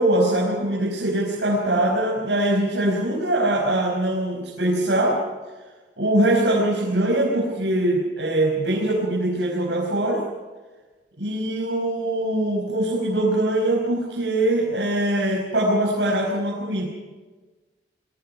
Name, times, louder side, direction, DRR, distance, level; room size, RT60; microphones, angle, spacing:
voice 1, 0.0-5.2 6.0-10.2 11.2-16.9, right 1 dB, 85° right, -2 dB, 5.3 m, -22 dB
27.0 x 23.0 x 5.7 m, 1.3 s
head